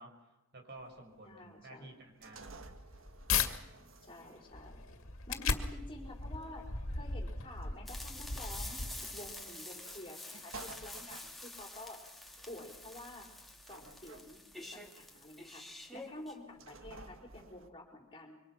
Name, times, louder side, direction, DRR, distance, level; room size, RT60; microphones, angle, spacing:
voice 1, 0.0-2.6, right 2 dB, 55° right, 3 dB, 5.8 m, -52 dB
sound 1, 0.8-17.7, right 3 dB, 70° right, 1.6 m, -56 dB
voice 2, 1.2-1.9 4.0-4.8 5.3-12.0 12.5-13.3 13.7-15.6 15.9-18.4, left 1 dB, 25° left, 1 dB, 4.8 m, -50 dB
sound 2, 2.4-3.5 4.0-9.3, left 5 dB, 85° left, 2.2 m, -37 dB
sound 3, 7.9-16.4, left 2 dB, ahead, 2.6 m, -48 dB
26.0 x 24.5 x 5.9 m, 0.98 s
head